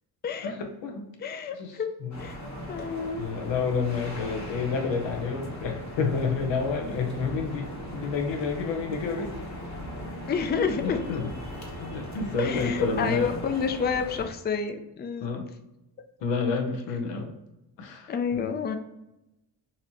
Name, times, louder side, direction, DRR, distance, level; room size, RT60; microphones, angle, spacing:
voice 1, 0.4-1.0 1.6-2.1 3.2-9.5 10.8-11.3 11.8-13.5 15.2-15.5 16.2-17.3 17.8-18.5, left 4 dB, 85° left, 4 dB, 0.8 m, -30 dB
voice 2, 1.2-1.9 2.2-2.4 2.7-3.3 10.3-11.0 12.4-15.3 18.1-18.8, left 6 dB, 25° left, 7 dB, 0.4 m, -29 dB
sound 1, 2.1-14.3, equal, 40° left, 1.1 m, -38 dB
4.1 x 2.7 x 2.9 m, 0.92 s
cardioid pair, 80°, 42 cm